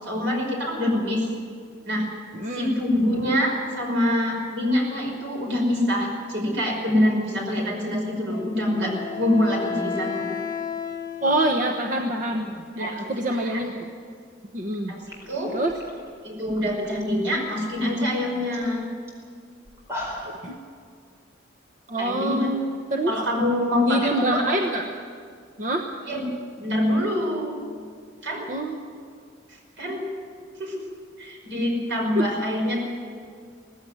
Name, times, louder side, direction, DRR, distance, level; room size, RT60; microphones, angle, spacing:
voice 1, 0.0-1.3 1.8-2.1 2.5-10.3 12.8-13.0 13.3-13.6 14.9-15.6 16.2-18.9 22.0-22.5 23.1-24.5 26.0-26.3 26.6-27.6 28.2-28.5 29.8-30.1 30.6-30.9 31.2-32.8, left 1 dB, 65° right, 0 dB, 5.4 m, -25 dB
voice 2, 2.3-2.7 11.2-13.9 14.5-14.9 15.5-15.7 20.2-20.5 21.9-23.1 23.9-24.9 25.6-25.9 28.5-28.8 32.2-32.3, right 1 dB, 40° right, 3 dB, 1.1 m, -26 dB
Wind instrument woodwind instrument, 8.3-11.9, left 6 dB, 15° left, 2.1 m, -32 dB
sound 1, 14.7-14.8 15.0-17.0 17.3-17.8 18.2-18.3 18.5-18.7 19.1-19.2 19.6-20.4, left 1 dB, 15° right, 4.4 m, -38 dB
18.5 x 15.5 x 9.2 m, 2.1 s
head